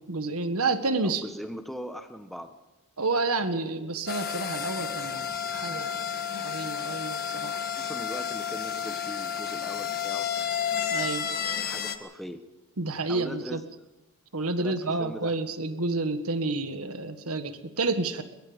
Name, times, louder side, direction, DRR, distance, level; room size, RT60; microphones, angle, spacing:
voice 1, 0.1-1.2 3.0-6.0 6.3-7.6 10.9-11.3 12.8-13.6 14.3-18.2, right 3 dB, 80° right, 9 dB, 1.7 m, -29 dB
voice 2, 1.0-2.5 7.6-10.9 11.6-12.4 13.1-13.6 14.6-15.3, equal, ahead, 7 dB, 1.1 m, -40 dB
sound 1, 4.1-12.0, left 8 dB, 45° left, 1.6 m, -31 dB
23.0 x 21.5 x 5.2 m, 1.0 s
head